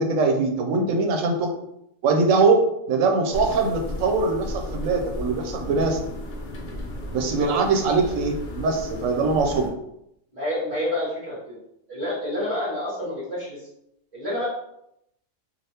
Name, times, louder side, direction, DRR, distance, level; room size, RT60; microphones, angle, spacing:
voice 1, 0.0-1.5 2.0-6.0 7.1-9.7, right 3 dB, 80° right, 4 dB, 0.9 m, -22 dB
sound 1, 3.3-9.7, left 1 dB, 55° left, 0.5 m, -35 dB
voice 2, 10.3-11.6 11.9-13.6 14.1-14.5, left 1 dB, 30° right, -9 dB, 0.9 m, -29 dB
3.3 x 2.5 x 2.7 m, 0.79 s
omnidirectional pair, 1.3 m